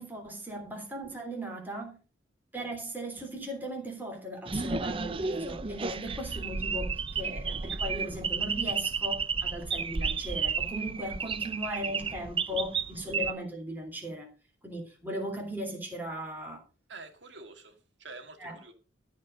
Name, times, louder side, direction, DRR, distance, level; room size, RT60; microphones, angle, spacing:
voice 1, 0.0-2.0 2.5-14.3 14.6-16.6 18.4-18.6, equal, 10° right, 3.2 m, -37 dB
sound 1, 4.5-13.3, right 5 dB, 30° right, 0.5 m, -32 dB
voice 2, 16.9-18.7, right 3 dB, 75° right, 2.2 m, -47 dB
13.5 x 5.2 x 6.3 m
head